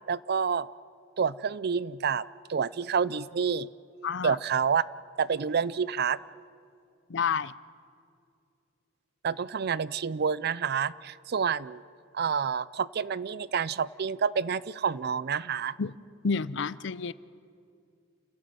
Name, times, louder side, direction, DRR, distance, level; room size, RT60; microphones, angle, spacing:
voice 1, 0.1-0.7 1.2-2.2 2.5-3.7 4.2-4.8 5.2-6.2 9.2-11.8 12.1-15.8, right 6 dB, 55° right, 19 dB, 0.5 m, -28 dB
voice 2, 4.0-4.4 7.1-7.5 15.8-16.0 16.2-17.1, left 5 dB, 65° left, 18 dB, 0.6 m, -29 dB
29.0 x 16.5 x 7.7 m, 2.4 s
head